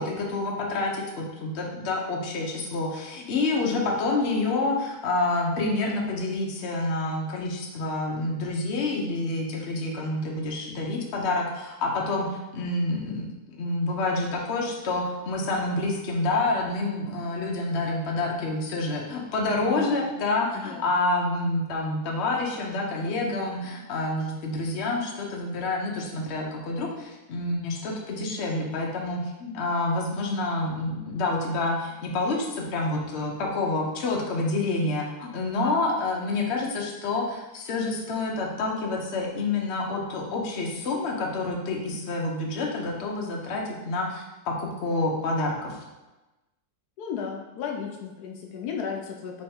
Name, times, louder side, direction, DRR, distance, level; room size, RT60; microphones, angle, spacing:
voice 1, 0.0-12.3 12.5-45.8, left 2 dB, 55° left, 0 dB, 0.9 m, -28 dB
voice 2, 19.6-20.0 20.5-20.8 35.6-35.9 47.0-49.4, left 6 dB, 75° left, 1 dB, 1.1 m, -34 dB
3.4 x 3.1 x 4.3 m, 1.1 s
omnidirectional pair, 1.7 m